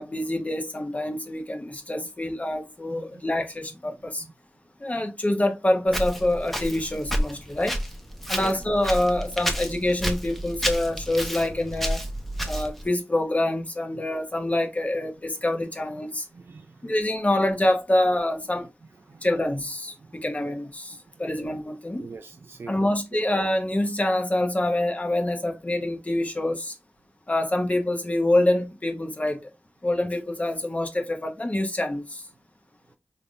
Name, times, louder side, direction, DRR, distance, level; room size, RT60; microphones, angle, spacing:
voice 1, 0.0-4.2 4.8-7.8 8.3-12.0 12.4-16.3 16.8-18.7 19.2-19.9 20.2-22.0 22.7-26.7 27.3-29.5 29.8-32.2, left 1 dB, 35° left, 0.9 m, -26 dB
voice 2, 2.9-3.2 4.2-4.3 8.4-8.6 16.3-16.9 19.0-19.3 20.0-20.3 20.9-21.1 22.0-23.2, right 4 dB, 65° right, 0.3 m, -43 dB
Walk footsteps, 5.9-12.9, equal, 5° left, 0.9 m, -30 dB
3.8 x 3.4 x 2.4 m
cardioid pair, 50°, 4 cm